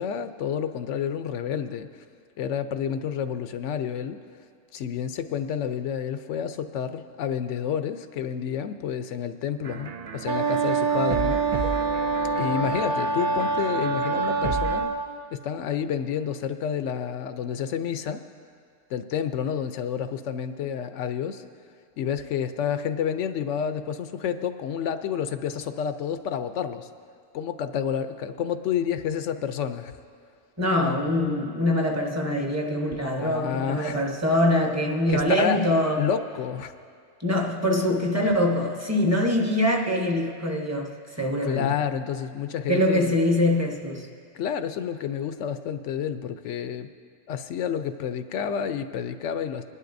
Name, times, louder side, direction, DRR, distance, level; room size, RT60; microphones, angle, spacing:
voice 1, 0.0-1.9 2.4-4.2 4.7-11.8 12.4-14.9 15.3-18.3 18.9-21.4 22.0-26.9 27.3-30.0 33.1-34.0 35.1-36.7 41.4-43.1 44.3-46.9 47.3-49.6, left 8 dB, 85° left, 10 dB, 0.9 m, -29 dB
sound 1, 9.6-14.9, right 4 dB, 75° right, 0.3 m, -34 dB
Wind instrument woodwind instrument, 10.3-15.1, right 4 dB, 50° right, 0.7 m, -25 dB
voice 2, 30.6-36.1 37.2-41.8 42.7-44.1, left 1 dB, 15° right, 1 dB, 0.9 m, -24 dB
22.0 x 11.0 x 2.6 m, 2.2 s
omnidirectional pair, 1.2 m